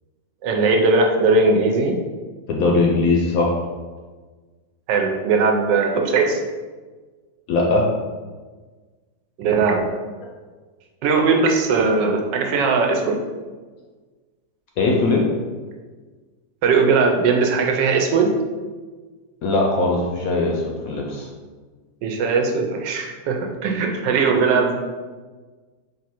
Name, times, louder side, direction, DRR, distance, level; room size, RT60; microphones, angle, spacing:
voice 1, 0.4-2.0 4.9-6.4 9.4-9.9 11.0-13.2 16.6-18.3 22.0-24.7, right 4 dB, 85° right, 2 dB, 1.3 m, -19 dB
voice 2, 2.5-3.5 7.5-7.8 14.8-15.2 19.4-21.3, left 3 dB, 70° left, -1 dB, 0.8 m, -20 dB
3.8 x 2.6 x 4.2 m, 1.4 s
omnidirectional pair, 1.9 m